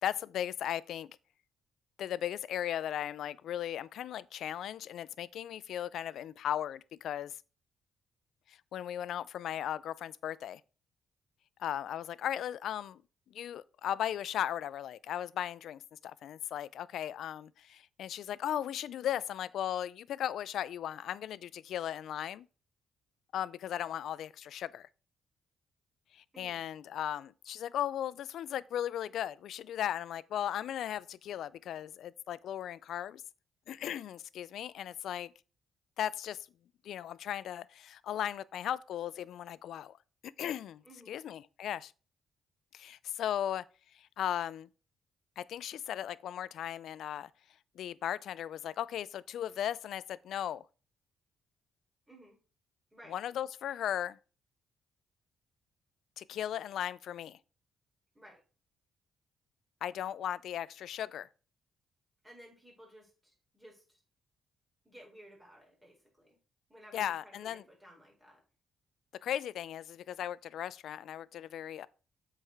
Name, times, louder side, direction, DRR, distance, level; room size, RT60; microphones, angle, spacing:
voice 1, 0.0-1.1 2.0-7.4 8.5-10.6 11.6-13.0 13.3-22.5 23.3-24.9 26.1-33.2 33.7-35.3 36.0-36.5 36.8-40.0 40.4-41.9 42.7-43.6 43.9-44.7 45.4-47.3 47.8-50.6 53.1-54.2 56.2-57.4 59.8-61.3 66.9-67.6 69.2-71.9, left 10 dB, 75° left, 0.4 m, -37 dB
voice 2, 40.8-41.2 52.1-52.4 52.9-53.2 58.1-58.4 62.2-64.0 64.8-66.4 66.7-68.4, equal, 10° right, 4.5 m, -56 dB
7.7 x 4.8 x 4.7 m
cardioid pair, 90°, 0 cm